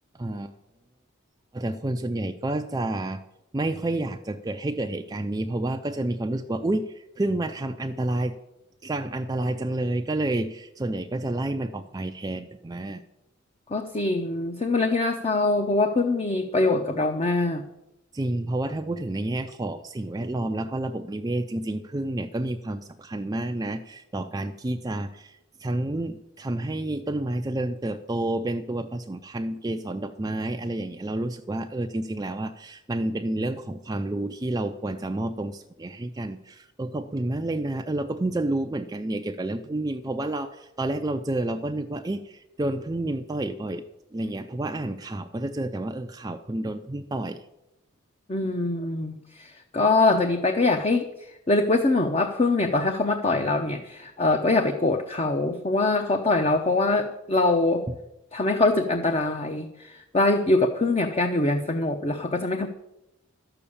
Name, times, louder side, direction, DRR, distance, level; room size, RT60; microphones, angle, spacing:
voice 1, 0.2-0.5 1.5-3.2 3.5-8.3 8.8-13.0 18.1-43.8 44.1-47.4 57.9-58.0, right 1 dB, 20° right, 6 dB, 0.4 m, -29 dB
voice 2, 13.7-17.6 48.3-51.0 51.5-57.8 58.3-62.7, left 2 dB, 30° left, 5 dB, 0.7 m, -23 dB
12.0 x 6.9 x 8.6 m, 0.92 s
head